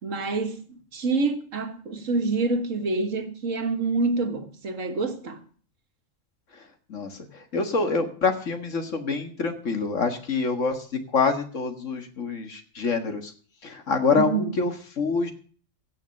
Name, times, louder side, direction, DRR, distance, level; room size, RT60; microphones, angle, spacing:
voice 1, 0.0-5.4 14.1-14.5, right 3 dB, 70° right, 1.9 m, -27 dB
voice 2, 6.9-10.9 11.1-13.3 13.6-15.3, left 4 dB, 65° left, 2.0 m, -26 dB
16.5 x 6.5 x 6.5 m
omnidirectional pair, 1.4 m